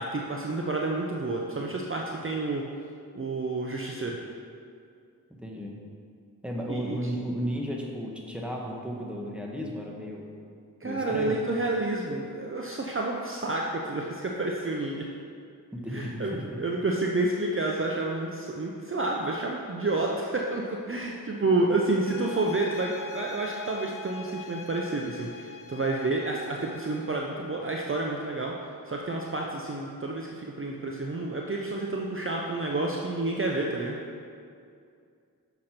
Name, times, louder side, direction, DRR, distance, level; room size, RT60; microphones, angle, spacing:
voice 1, 0.0-2.6 3.1-4.2 6.7-7.0 10.8-15.1 15.9-34.0, right 2 dB, 35° right, -1 dB, 0.6 m, -29 dB
voice 2, 5.4-5.8 6.4-10.3 10.8-11.4 15.7-16.6, equal, 5° right, -2 dB, 1.2 m, -34 dB
sound 1, 22.0-27.3, left 4 dB, 60° left, 0.6 m, -44 dB
6.4 x 6.0 x 4.3 m, 2.3 s
wide cardioid pair, 50°, 36 cm